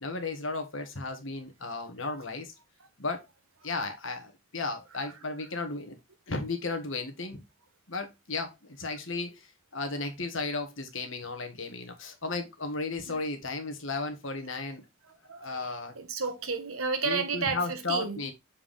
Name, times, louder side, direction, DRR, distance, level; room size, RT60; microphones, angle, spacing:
voice 1, 0.0-2.5 3.0-3.3 3.6-5.9 6.3-7.4 7.9-14.8 15.3-15.9 17.0-18.3, left 3 dB, 60° left, 1.6 m, -34 dB
voice 2, 15.3-18.2, right 4 dB, 80° right, 1.4 m, -32 dB
7.2 x 4.7 x 3.6 m
head